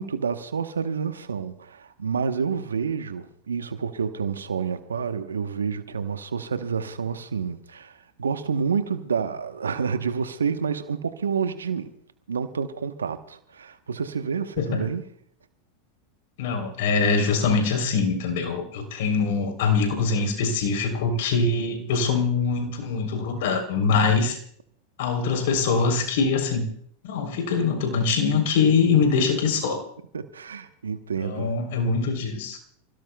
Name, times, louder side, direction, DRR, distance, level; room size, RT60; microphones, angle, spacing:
voice 1, 0.0-11.9 12.3-15.0 21.5-21.7 30.1-31.5, right 6 dB, 85° right, 9 dB, 1.0 m, -29 dB
voice 2, 16.4-24.4 25.0-26.7 27.0-29.8 31.2-32.6, left 4 dB, 65° left, 5 dB, 3.4 m, -23 dB
29.5 x 17.0 x 2.3 m, 0.65 s
hypercardioid pair, 95°, 0 cm